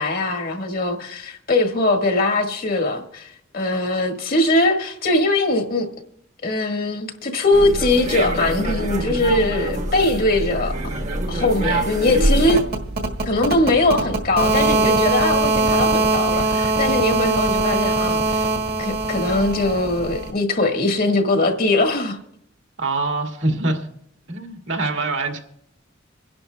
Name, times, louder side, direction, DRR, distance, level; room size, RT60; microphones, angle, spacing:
voice 1, 0.0-5.9 6.4-10.7 11.3-12.6 13.2-18.5 18.8-22.2, left 2 dB, 50° left, 1.7 m, -21 dB
sound 1, 7.5-12.6, right 1 dB, 40° right, 1.2 m, -24 dB
sound 2, 12.4-20.3, right 3 dB, 55° right, 1.7 m, -21 dB
voice 2, 22.8-23.9 24.3-25.4, right 2 dB, 70° right, 2.0 m, -24 dB
27.0 x 11.0 x 2.3 m
head